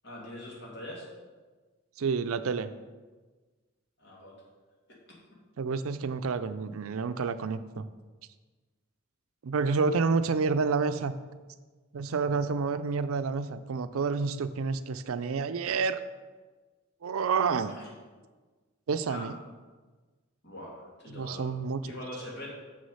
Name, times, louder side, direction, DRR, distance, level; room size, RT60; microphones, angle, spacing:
voice 1, 0.0-1.1 4.0-4.4 4.9-5.0 17.6-17.9 19.1-19.3 20.4-21.5 21.8-22.5, left 1 dB, 55° left, -4 dB, 2.6 m, -42 dB
voice 2, 2.0-2.7 5.6-7.9 9.4-11.1 11.9-16.0 17.0-17.7 18.9-19.4 21.1-21.8, right 5 dB, 85° right, 12 dB, 0.5 m, -29 dB
6.6 x 6.3 x 5.6 m, 1.3 s
head